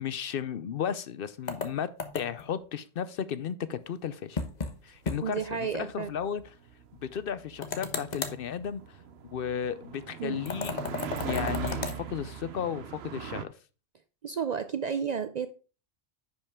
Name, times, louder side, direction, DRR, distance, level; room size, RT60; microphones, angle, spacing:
voice 1, 0.0-1.9 2.1-4.4 4.8-5.4 5.7-6.4 7.0-9.0 9.3-10.9 11.2-13.5, left 8 dB, 65° left, 0.7 m, -34 dB
sound 1, 1.5-2.5 4.4-4.7 5.1-5.2 5.5-5.6 7.6-8.4 10.5-12.0, left 4 dB, 40° left, 1.0 m, -34 dB
sound 2, 5.0-13.4, right 7 dB, 70° right, 0.9 m, -40 dB
voice 2, 5.2-6.1 10.2-10.4 14.2-15.5, right 7 dB, 55° right, 0.5 m, -32 dB
10.0 x 5.5 x 3.5 m
omnidirectional pair, 1.1 m